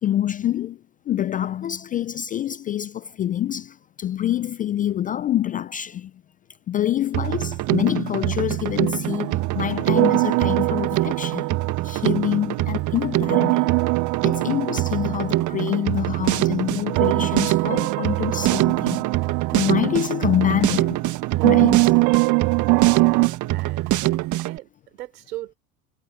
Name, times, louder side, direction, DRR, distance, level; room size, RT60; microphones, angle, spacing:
voice 1, 0.0-6.1 6.7-13.8 14.2-21.0 21.4-22.0, left 11 dB, 20° left, 0.4 m, -26 dB
Drum kit, 7.1-24.6, right 16 dB, 40° right, 1.4 m, -25 dB
sound 1, 9.1-23.3, right 33 dB, 55° right, 2.2 m, -24 dB
voice 2, 22.8-25.6, right 15 dB, 75° right, 4.7 m, -39 dB
hypercardioid pair, 95°, 48 cm